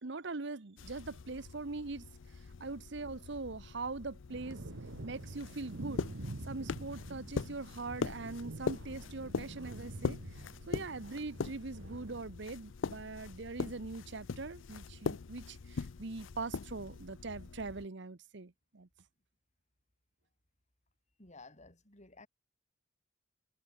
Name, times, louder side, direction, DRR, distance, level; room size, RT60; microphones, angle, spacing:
voice 1, 0.0-2.1 2.6-4.6 5.0-6.1 6.4-10.2 10.7-18.9, right 3 dB, 65° right, 1.0 m, -42 dB
sound 1, 0.8-17.9, left 4 dB, 85° left, 0.6 m, -42 dB
sound 2, 4.3-12.2, right 2 dB, 90° right, 1.2 m, -47 dB
voice 2, 21.2-22.3, left 3 dB, 40° left, 6.8 m, -54 dB
head